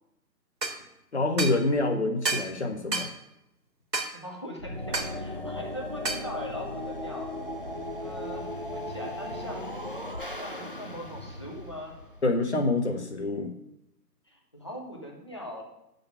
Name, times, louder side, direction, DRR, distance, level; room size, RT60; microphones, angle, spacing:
sound 1, 0.6-0.8 1.4-1.6 2.2-2.5 2.9-3.1 3.9-4.1 4.9-5.1 6.0-6.3, right 3 dB, 80° right, 1.7 m, -30 dB
voice 1, 1.1-3.1 12.2-13.5, left 2 dB, 40° left, 4 dB, 1.6 m, -26 dB
voice 2, 4.1-7.3 8.0-9.7 10.3-12.0 14.2-15.6, equal, 15° left, -1 dB, 1.0 m, -41 dB
sound 2, 4.6-12.7, left 1 dB, 35° right, 0.6 m, -37 dB
9.5 x 6.9 x 5.7 m, 0.84 s
figure-of-eight pair, 160°, 50 cm